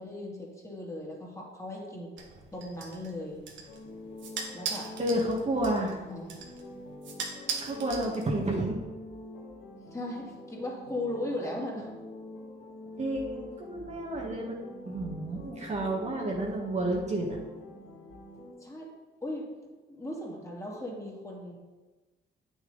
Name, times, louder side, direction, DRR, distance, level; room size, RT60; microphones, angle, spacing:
voice 1, 0.0-2.1 2.5-3.4 4.5-4.9 5.5-5.7 6.0-6.4 9.8-11.9 18.6-18.9 19.2-21.5, left 1 dB, 15° left, -3 dB, 2.5 m, -38 dB
sound 1, 2.2-8.6, right 5 dB, 70° right, 1.4 m, -40 dB
sound 2, 3.7-18.5, left 2 dB, 85° left, 2.0 m, -46 dB
voice 2, 5.0-5.9 7.6-8.8 13.0-17.4, right 1 dB, 35° right, -2 dB, 1.6 m, -31 dB
8.2 x 6.5 x 4.0 m, 1.2 s
cardioid pair, 90°, 20 cm